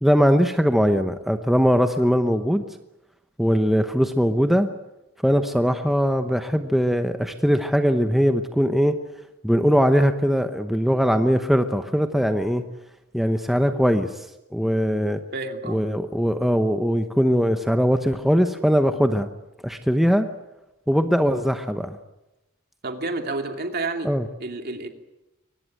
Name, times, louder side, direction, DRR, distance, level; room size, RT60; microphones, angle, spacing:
voice 1, 0.0-2.6 3.4-4.7 5.2-8.9 9.4-12.6 13.1-14.3 14.5-15.2 15.7-19.3 19.6-20.3 20.9-22.0 24.0-24.2, equal, ahead, 7 dB, 0.9 m, -20 dB
voice 2, 15.3-15.8 22.8-24.1 24.4-24.9, right 3 dB, 50° right, 5 dB, 2.6 m, -29 dB
23.5 x 19.0 x 9.1 m, 0.96 s
head